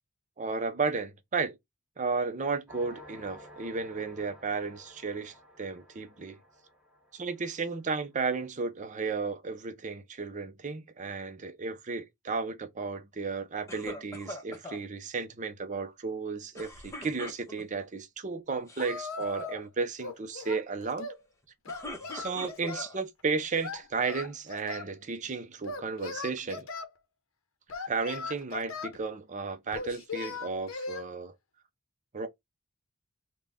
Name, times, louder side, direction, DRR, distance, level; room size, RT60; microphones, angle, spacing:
voice 1, 0.4-1.6 2.0-6.4 7.1-21.1 22.1-26.7 27.9-31.3 32.1-32.3, right 4 dB, 35° right, 0.6 m, -34 dB
sound 1, 2.7-8.0, left 1 dB, 5° right, 1.2 m, -53 dB
sound 2, 13.7-14.8 16.5-17.8 18.5-18.9 19.2-19.6 21.4-23.0 23.5-24.3, left 1 dB, 15° left, 0.9 m, -43 dB
Singing, 18.8-19.7 20.0-21.2 21.7-22.9 23.6-24.9 25.6-26.9 27.7-29.0 29.7-31.0, left 4 dB, 70° left, 0.8 m, -39 dB
3.7 x 2.2 x 3.5 m
head